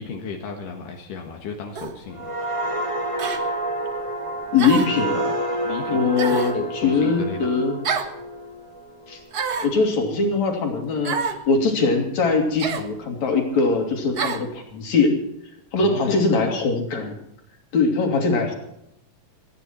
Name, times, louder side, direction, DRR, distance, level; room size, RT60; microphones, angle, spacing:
voice 1, 0.0-2.3 5.6-6.0 6.3-7.4 15.8-16.2, left 5 dB, 85° left, 1 dB, 3.2 m, -33 dB
sound 1, 1.8-2.0 3.2-3.4 4.6-5.0 6.2-6.6 7.8-8.2 9.3-9.8 11.0-11.4 12.6-12.9 14.2-14.5, right 6 dB, 65° right, 0.9 m, -27 dB
sound 2, 2.1-9.6 10.0-10.3, right 1 dB, 20° right, 0.9 m, -29 dB
voice 2, 4.5-5.3 5.9-7.8 9.1-9.2 9.6-15.2 15.7-17.1 17.7-18.5, left 4 dB, 60° left, 2 dB, 4.1 m, -21 dB
28.0 x 10.0 x 4.4 m, 0.80 s
omnidirectional pair, 3.6 m